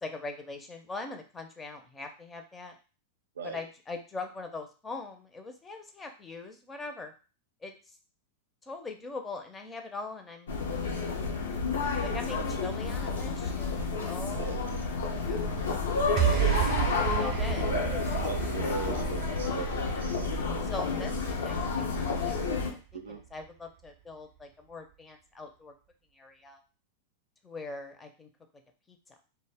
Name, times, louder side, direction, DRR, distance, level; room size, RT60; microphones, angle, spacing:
voice 1, 0.0-2.8 3.4-7.1 7.6-7.7 8.6-10.9 11.2-11.6 12.0-15.6 17.1-18.0 20.6-22.3 22.6-25.7 26.1-26.6 27.4-28.3 28.9-29.0, left 3 dB, 15° left, 5 dB, 0.5 m, -42 dB
sound 1, 10.5-22.7, left 4 dB, 85° left, 0.6 m, -30 dB
voice 2, 14.3-14.7 16.1-16.9 18.2-20.3 22.9-23.2, right 6 dB, 90° right, 5 dB, 0.4 m, -40 dB
sound 2, 16.2-22.6, right 12 dB, 40° right, 0.6 m, -32 dB
2.1 x 2.0 x 3.4 m, 0.35 s
hypercardioid pair, 110°, 0 cm